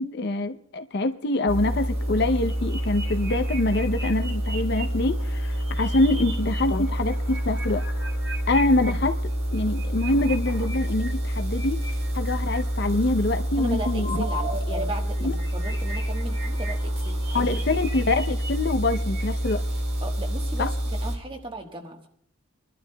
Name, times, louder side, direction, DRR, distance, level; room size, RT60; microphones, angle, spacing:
voice 1, 0.0-7.8 8.5-9.2 9.5-11.8 12.1-14.2 15.2-15.3 17.3-19.6 20.6-20.7, left 2 dB, 55° left, 9 dB, 0.6 m, -25 dB
sound 1, 1.5-21.2, equal, 50° right, 2.1 m, -28 dB
sound 2, 2.2-4.8 5.3-6.6 6.8-8.9 9.5-12.6 13.3-14.8 15.1-19.5, right 1 dB, 85° right, 2.6 m, -38 dB
voice 2, 13.6-17.5 20.0-22.1, right 2 dB, 25° right, 3 dB, 1.3 m, -37 dB
28.0 x 12.0 x 2.2 m, 0.69 s
head